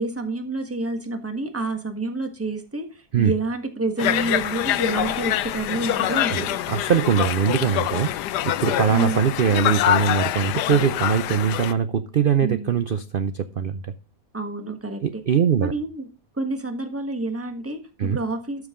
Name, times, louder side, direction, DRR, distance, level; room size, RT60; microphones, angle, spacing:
voice 1, 0.0-2.9 3.2-6.6 8.9-9.2 12.4-12.7 14.3-15.2 15.6-16.1 16.4-18.7, right 2 dB, 10° right, 7 dB, 1.3 m, -28 dB
Conversation, 4.0-11.7, left 12 dB, 90° left, 1.2 m, -25 dB
voice 2, 6.3-13.9 15.0-15.7 18.0-18.2, right 7 dB, 80° right, 12 dB, 0.4 m, -22 dB
12.5 x 6.4 x 3.7 m, 0.34 s
omnidirectional pair, 1.7 m